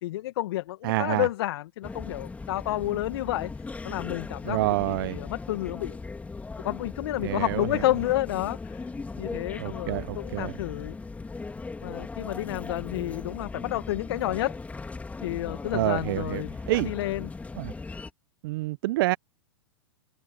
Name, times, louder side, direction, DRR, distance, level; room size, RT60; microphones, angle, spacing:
voice 1, 0.0-3.5 3.8-6.0 6.6-8.9 9.2-11.0 11.8-14.6 15.2-17.3, left 15 dB, 55° left, 2.0 m, -30 dB
voice 2, 0.8-1.3 4.4-5.2 7.2-7.7 9.6-10.5 15.7-16.9 17.6-17.7 18.4-19.2, right 19 dB, 50° right, 0.7 m, -27 dB
sound 1, 1.8-18.1, left 3 dB, 10° left, 3.6 m, -38 dB
figure-of-eight pair, 105°, 15 cm